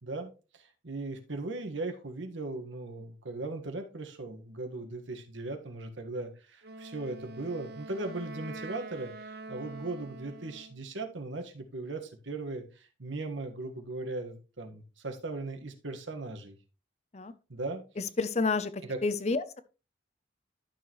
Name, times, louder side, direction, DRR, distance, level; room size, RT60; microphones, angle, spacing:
voice 1, 0.0-16.6 17.5-17.8 18.8-19.0, right 2 dB, 85° right, 1.5 m, -38 dB
Wind instrument woodwind instrument, 6.6-10.8, right 2 dB, 55° right, 0.9 m, -45 dB
voice 2, 18.0-19.6, left 3 dB, 35° left, 0.6 m, -30 dB
11.5 x 6.6 x 3.1 m
head